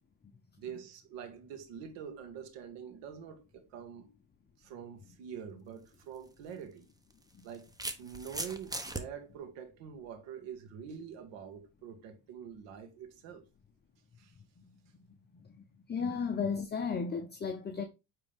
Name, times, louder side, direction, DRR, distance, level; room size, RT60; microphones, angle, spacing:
voice 1, 0.6-4.1 4.6-6.9 7.4-7.7 8.0-13.4 14.2-14.3, right 7 dB, 75° right, 1.9 m, -45 dB
sound 1, 5.8-6.0 7.1-9.0, right 2 dB, 10° right, 0.9 m, -39 dB
voice 2, 15.9-17.8, left 5 dB, 25° left, 0.7 m, -33 dB
9.0 x 3.6 x 3.6 m
supercardioid pair, 105°, 43 cm